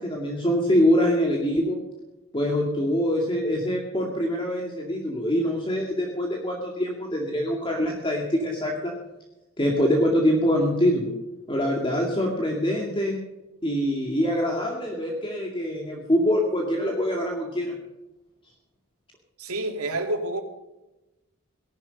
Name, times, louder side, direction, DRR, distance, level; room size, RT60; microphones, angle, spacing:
voice 1, 0.0-1.8 2.3-8.9 9.6-11.1 11.5-13.2 13.6-17.8, equal, 25° left, -1 dB, 2.2 m, -24 dB
voice 2, 19.4-20.4, right 2 dB, 90° right, 4 dB, 2.7 m, -28 dB
18.0 x 12.0 x 5.3 m, 0.98 s
head